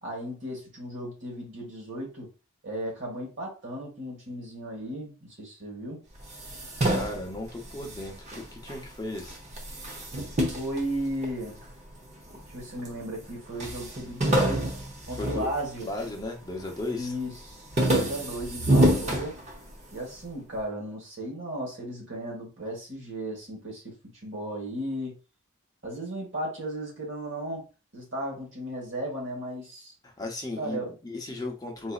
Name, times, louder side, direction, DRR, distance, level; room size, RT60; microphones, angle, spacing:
voice 1, 0.0-2.3 2.6-6.0 10.5-11.6 12.5-14.7 15.1-15.9 16.9-19.4 19.9-24.0 24.2-25.1 25.8-27.7 27.9-29.9 30.6-30.9, right 1 dB, 60° right, 1.4 m, -35 dB
sound 1, 6.2-8.8 9.2-11.7 12.3-13.0 13.2-13.3 13.6-16.2 16.6-17.0 17.4-19.9, right 1 dB, 35° right, 0.7 m, -27 dB
voice 2, 6.8-9.4 15.1-15.5 15.8-17.2 30.0-31.9, left 2 dB, 20° left, 0.7 m, -36 dB
4.0 x 2.6 x 2.4 m
head